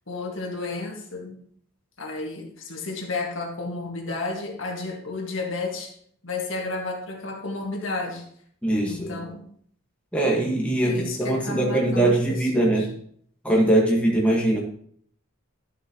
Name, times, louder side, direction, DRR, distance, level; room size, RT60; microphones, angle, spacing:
voice 1, 0.1-1.4 2.0-5.9 6.2-8.2 8.8-9.4 10.8-12.9, left 3 dB, 65° left, 0 dB, 1.8 m, -32 dB
voice 2, 8.6-9.2 10.1-12.9 13.4-14.6, right 1 dB, 5° left, -3 dB, 1.4 m, -22 dB
11.5 x 7.1 x 2.9 m, 0.62 s
head